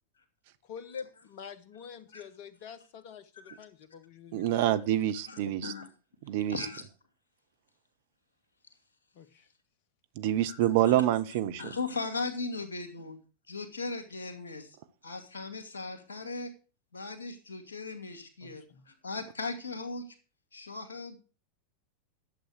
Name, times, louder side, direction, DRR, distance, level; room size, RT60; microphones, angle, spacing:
voice 1, 0.7-4.8 9.1-9.5 18.4-18.8, left 7 dB, 45° left, 1.4 m, -46 dB
voice 2, 4.3-5.7 6.2-6.7 10.2-11.7, right 12 dB, 50° right, 0.9 m, -27 dB
voice 3, 5.3-5.9 6.5-6.8 10.5-10.9 11.6-13.2 13.5-14.7 15.0-16.5 16.9-20.1 20.5-21.2, left 3 dB, 70° left, 2.3 m, -38 dB
11.5 x 8.0 x 6.6 m
figure-of-eight pair, 90°, 0 cm